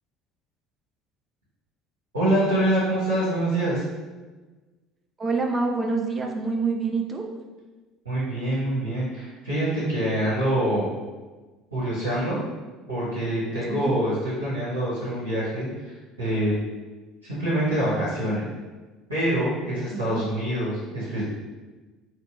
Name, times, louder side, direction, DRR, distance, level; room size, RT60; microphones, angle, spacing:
voice 1, 2.1-3.8 8.0-10.9 11.7-12.4 12.9-15.7 16.2-16.5 17.2-18.5 19.1-21.2, right 1 dB, 80° right, -11 dB, 1.0 m, -25 dB
voice 2, 5.2-7.3 13.7-13.9 19.9-20.3, right 4 dB, 25° right, 2 dB, 0.4 m, -26 dB
4.0 x 2.1 x 2.6 m, 1.3 s
figure-of-eight pair, 60°, 0 cm